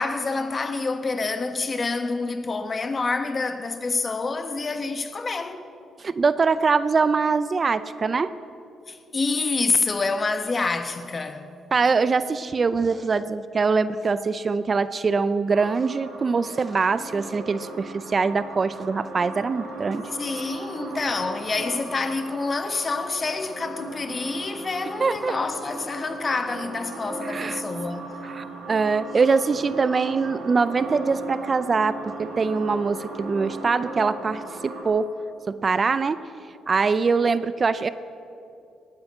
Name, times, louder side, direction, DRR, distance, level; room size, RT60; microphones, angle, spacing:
voice 1, 0.0-5.7 8.9-11.4 20.2-28.2, left 3 dB, 35° left, 1.2 m, -27 dB
voice 2, 6.0-8.3 11.7-20.1 25.0-25.3 27.2-27.6 28.2-35.1 35.5-36.2 36.7-37.9, right 4 dB, 35° right, 0.5 m, -23 dB
sound 1, 15.5-34.8, right 2 dB, 80° right, 5.2 m, -37 dB
18.5 x 9.7 x 7.9 m
cardioid pair, 90°, 0 cm